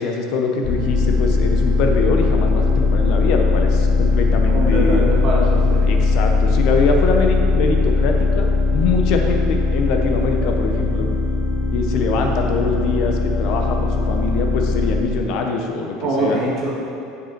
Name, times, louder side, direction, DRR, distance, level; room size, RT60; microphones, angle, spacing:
voice 1, 0.0-5.1 5.8-8.5 8.7-11.1 11.7-16.4, left 4 dB, 55° left, 3 dB, 0.7 m, -23 dB
sound 1, 0.6-15.0, left 3 dB, 20° left, 0.6 m, -19 dB
voice 2, 4.5-5.9 16.0-16.8, right 1 dB, 35° right, -5 dB, 1.7 m, -23 dB
8.2 x 5.0 x 4.6 m, 2.7 s
cardioid pair, 150°, 0 cm